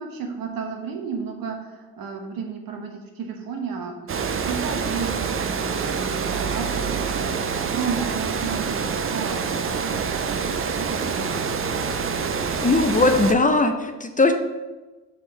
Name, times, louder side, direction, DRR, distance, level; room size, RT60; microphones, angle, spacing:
voice 1, 0.0-11.6, right 5 dB, 70° right, 2 dB, 1.2 m, -33 dB
Water, 4.1-13.3, right 5 dB, 35° right, 0.6 m, -26 dB
voice 2, 12.6-14.3, left 3 dB, 20° left, 6 dB, 0.7 m, -19 dB
4.8 x 4.4 x 4.8 m, 1.2 s
supercardioid pair, 55°, 35 cm